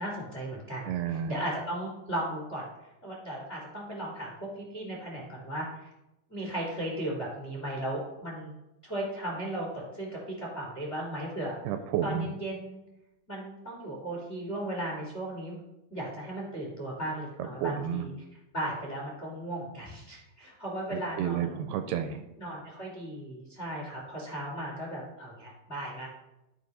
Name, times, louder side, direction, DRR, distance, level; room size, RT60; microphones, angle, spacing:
voice 1, 0.0-2.7 3.0-5.9 6.3-8.5 8.8-10.1 10.4-11.6 12.0-12.8 13.3-15.6 15.9-18.1 18.5-21.6 22.4-26.1, right 1 dB, 20° left, -3 dB, 2.0 m, -36 dB
voice 2, 0.9-1.3 11.7-12.3 17.6-18.0 20.9-22.2, right 9 dB, 80° right, 8 dB, 2.4 m, -31 dB
13.0 x 5.0 x 4.1 m, 0.91 s
omnidirectional pair, 4.8 m